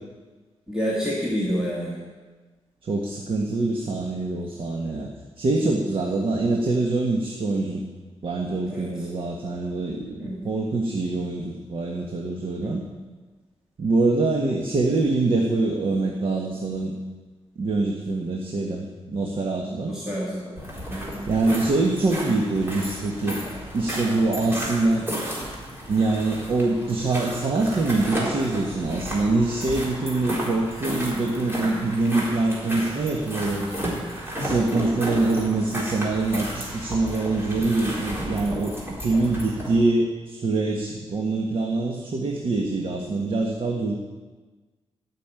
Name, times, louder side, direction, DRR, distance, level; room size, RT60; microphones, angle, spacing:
voice 1, 0.7-2.0 8.7-8.9 10.2-10.5 12.6-12.9 19.9-20.6 20.9-21.2 31.6-31.9, equal, 5° right, -6 dB, 2.5 m, -29 dB
voice 2, 2.8-5.1 5.4-7.8 8.2-12.8 13.8-16.9 17.5-20.0 21.3-23.4 23.7-25.1 25.9-33.7 34.4-43.9, right 2 dB, 55° right, 0 dB, 1.6 m, -24 dB
sound 1, 20.6-39.8, equal, 20° right, 4.0 m, -33 dB
15.5 x 6.6 x 9.0 m, 1.3 s
wide cardioid pair, 135°, 11 cm